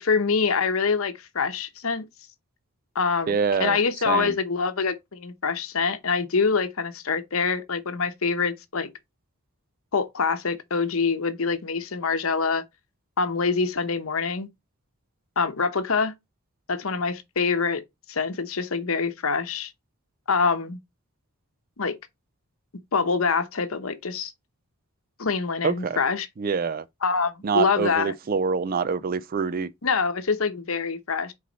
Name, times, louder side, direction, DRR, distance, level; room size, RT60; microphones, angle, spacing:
voice 1, 0.0-2.1 2.9-8.9 9.9-12.6 13.2-14.5 15.4-16.1 16.7-17.8 18.1-19.7 20.3-20.8 21.8-21.9 22.9-24.3 25.2-26.3 27.0-28.1 29.8-31.3, left 5 dB, 70° left, 0.9 m, -25 dB
voice 2, 3.3-3.8 4.1-4.3 25.6-26.0 26.4-26.8 27.4-29.7, right 5 dB, 40° right, 0.4 m, -25 dB
6.2 x 4.1 x 4.0 m
head